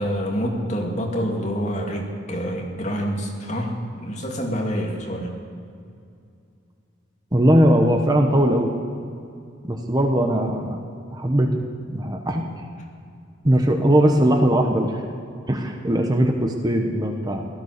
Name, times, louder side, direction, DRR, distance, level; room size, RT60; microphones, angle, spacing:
voice 1, 0.0-5.4, equal, 35° left, 0 dB, 2.5 m, -27 dB
voice 2, 7.3-8.7 9.6-10.8 11.1-11.6 11.9-12.5 13.4-15.0 15.5-17.5, right 1 dB, 20° right, 3 dB, 1.1 m, -19 dB
17.0 x 12.5 x 6.7 m, 2.4 s
head